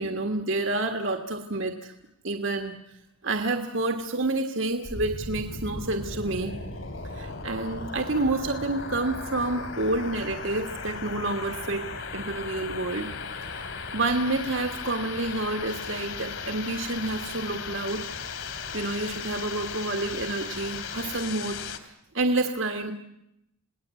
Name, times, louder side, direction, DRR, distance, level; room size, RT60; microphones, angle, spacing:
voice 1, 0.0-1.9 2.2-2.7 3.2-6.6 7.1-13.1 13.9-18.0 18.7-21.9 22.1-22.9, right 2 dB, 60° right, 5 dB, 1.7 m, -29 dB
sound 1, 4.9-21.8, left 4 dB, 60° left, 2.7 m, -36 dB
28.5 x 19.0 x 8.4 m, 0.83 s
head